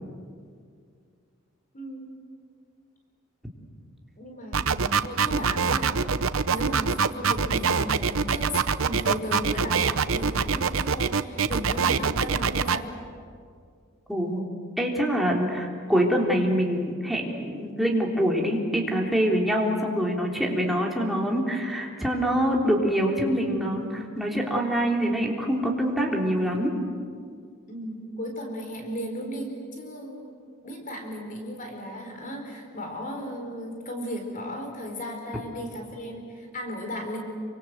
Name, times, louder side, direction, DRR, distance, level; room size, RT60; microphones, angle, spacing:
voice 1, 1.7-2.1 4.2-6.1 6.5-12.9 27.7-30.3 30.6-37.2, equal, 40° left, 3 dB, 4.4 m, -35 dB
sound 1, 4.5-12.8, right 5 dB, 80° right, 0.8 m, -24 dB
voice 2, 14.1-14.4 14.8-26.7, equal, ahead, -2 dB, 3.6 m, -25 dB
27.0 x 25.0 x 8.0 m, 2.1 s
head